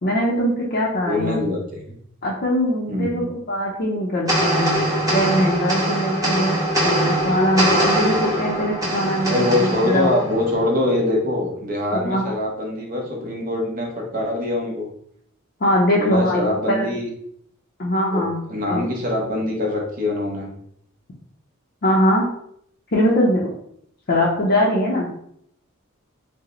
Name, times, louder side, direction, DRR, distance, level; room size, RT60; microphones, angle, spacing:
voice 1, 0.0-1.4 2.2-4.8 5.1-10.1 12.0-12.3 15.6-16.9 17.8-18.4 18.7-18.9 21.8-22.2 22.9-23.5 24.1-25.1, equal, 50° left, -4 dB, 0.6 m, -21 dB
voice 2, 1.1-2.0 2.9-3.3 9.3-14.9 15.9-17.1 18.1-20.5, left 1 dB, 40° right, -1 dB, 0.9 m, -24 dB
sound 1, 4.3-10.9, right 1 dB, 15° right, 1.1 m, -22 dB
4.8 x 2.1 x 3.1 m, 0.70 s
head